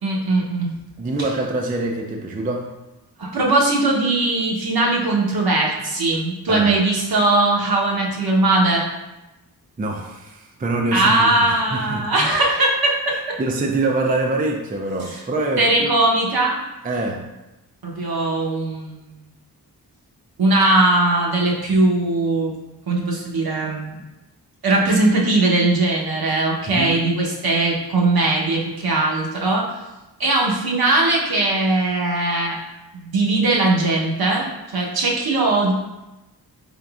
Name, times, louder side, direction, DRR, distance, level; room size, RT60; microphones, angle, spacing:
voice 1, 0.0-0.7 3.2-8.9 10.9-13.1 15.1-15.2 15.6-16.6 17.8-19.1 20.4-22.5 22.9-24.0 24.6-29.7 30.2-32.6 32.9-35.7, right 2 dB, 60° right, -2 dB, 0.9 m, -19 dB
voice 2, 1.0-2.7 6.5-6.7 9.8-12.3 13.4-15.9 16.8-17.2 26.7-27.0, right 2 dB, 20° right, 2 dB, 0.4 m, -25 dB
3.8 x 3.6 x 2.3 m, 0.99 s
cardioid pair, 65°, 41 cm